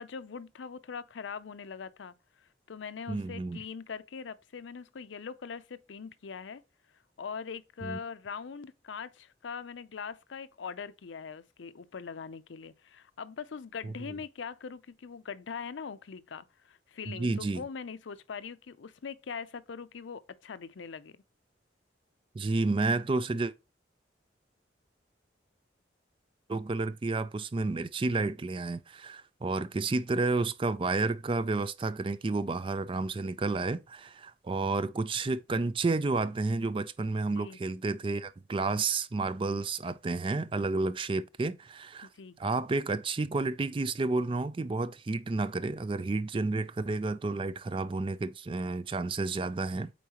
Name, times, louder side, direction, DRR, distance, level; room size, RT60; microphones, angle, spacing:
voice 1, 0.0-6.6 7.2-21.2 37.3-37.6 42.0-42.4, left 6 dB, 90° left, 0.5 m, -42 dB
voice 2, 3.1-3.6 7.8-8.0 13.8-13.9 17.1-17.6 22.3-23.5 26.5-42.1 42.4-49.9, right 3 dB, 30° right, 0.4 m, -31 dB
8.3 x 4.0 x 2.9 m
head